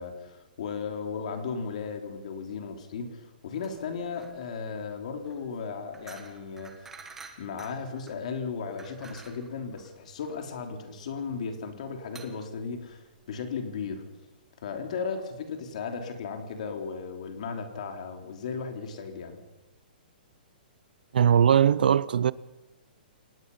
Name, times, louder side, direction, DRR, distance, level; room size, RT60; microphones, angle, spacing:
voice 1, 0.0-7.0 7.4-14.1 14.6-19.4, left 5 dB, 45° left, 3.5 m, -36 dB
sound 1, 3.5-13.5, right 4 dB, 5° right, 1.4 m, -51 dB
voice 2, 21.1-22.3, right 8 dB, 65° right, 0.7 m, -20 dB
29.5 x 18.5 x 5.6 m
hypercardioid pair, 180°, 5 cm